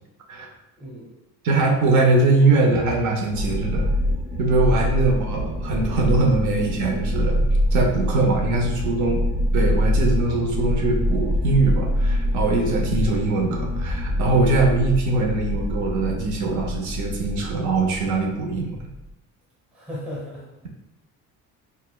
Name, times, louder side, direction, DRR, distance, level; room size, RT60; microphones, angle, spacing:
voice 1, 0.8-1.1 4.8-5.0 9.0-9.1 19.7-20.6, equal, 5° right, -6 dB, 0.7 m, -36 dB
voice 2, 1.4-3.9 4.4-7.4 7.7-9.2 9.5-18.8, right 3 dB, 70° right, 1 dB, 0.7 m, -22 dB
sound 1, 3.3-19.1, equal, 30° right, 1.0 m, -25 dB
6.3 x 2.2 x 2.2 m, 0.91 s
cardioid pair, 175°, 31 cm